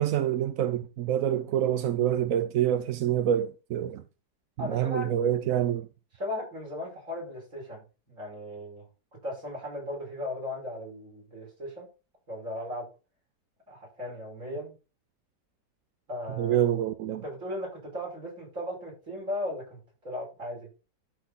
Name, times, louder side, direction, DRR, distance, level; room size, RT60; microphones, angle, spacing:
voice 1, 0.0-4.0 4.6-5.9 16.4-17.2, right 10 dB, 65° right, 0.8 m, -26 dB
voice 2, 4.6-5.1 6.2-8.9 9.2-11.9 12.3-12.9 13.7-14.7 16.1-16.6 17.2-20.7, left 1 dB, 45° right, 5.9 m, -37 dB
12.0 x 4.3 x 4.1 m
omnidirectional pair, 1.8 m